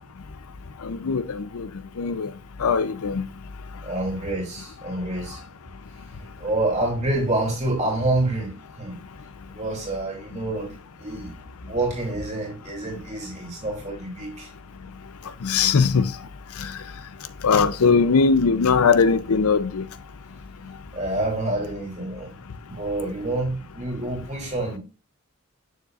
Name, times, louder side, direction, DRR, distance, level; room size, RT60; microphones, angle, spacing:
voice 1, 1.0-1.7 2.0-2.3 2.6-3.2 15.4-16.1 17.4-19.8, left 5 dB, 85° left, 0.5 m, -20 dB
voice 2, 3.8-5.4 6.4-8.5 8.8-8.9 9.5-10.7 11.0-11.4 11.6-14.5 20.9-22.3 22.7-24.8, right 2 dB, 30° right, 2.6 m, -27 dB
6.8 x 6.7 x 2.4 m
head